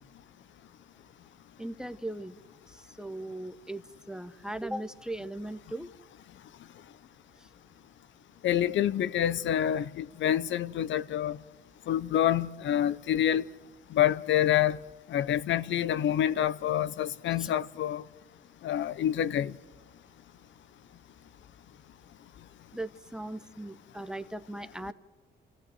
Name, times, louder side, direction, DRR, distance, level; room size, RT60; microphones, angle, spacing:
voice 1, 1.6-2.4 2.7-5.9 17.4-17.5 22.7-24.9, right 1 dB, 5° right, 0.9 m, -38 dB
voice 2, 8.4-11.4 11.9-13.4 13.9-14.8 15.1-18.0 18.6-19.5, left 11 dB, 70° left, 0.7 m, -27 dB
29.0 x 15.5 x 7.9 m
cardioid pair, 90°, 20 cm